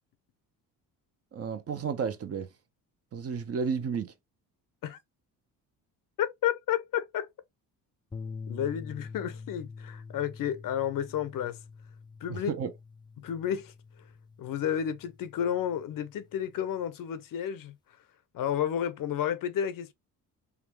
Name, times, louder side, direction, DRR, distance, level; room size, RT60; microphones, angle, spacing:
voice 1, 1.3-2.5 3.1-4.1 12.3-12.7, right 6 dB, 40° right, 0.7 m, -32 dB
voice 2, 6.2-7.3 8.5-11.6 12.2-12.5 13.2-13.7 14.4-17.8 18.3-19.9, left 9 dB, 60° left, 0.7 m, -31 dB
sound 1, 8.1-16.5, left 4 dB, 15° left, 0.3 m, -45 dB
3.6 x 2.3 x 3.0 m
cardioid pair, 100°, 38 cm